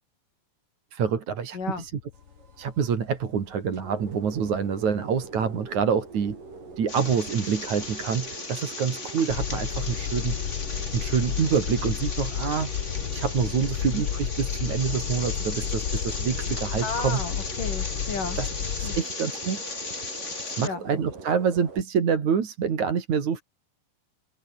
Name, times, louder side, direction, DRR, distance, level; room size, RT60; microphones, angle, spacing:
voice 1, 0.9-2.0 2.6-6.4 6.8-10.4 10.9-12.7 13.1-17.2 18.4-18.5 18.8-19.6 20.4-23.4, right 6 dB, 65° right, 4.2 m, -26 dB
voice 2, 1.5-1.9 16.8-18.4 18.8-19.0 20.6-20.9, left 4 dB, 80° left, 7.7 m, -33 dB
sound 1, 1.7-2.6 3.7-4.2 5.3-6.2 6.5-6.8 7.2-8.3 9.3-19.0, left 10 dB, 60° left, 1.3 m, -32 dB
sound 2, 2.1-21.8, right 4 dB, 85° right, 8.2 m, -43 dB
sound 3, 6.9-20.7, left 3 dB, 20° left, 3.1 m, -36 dB
omnidirectional pair, 3.7 m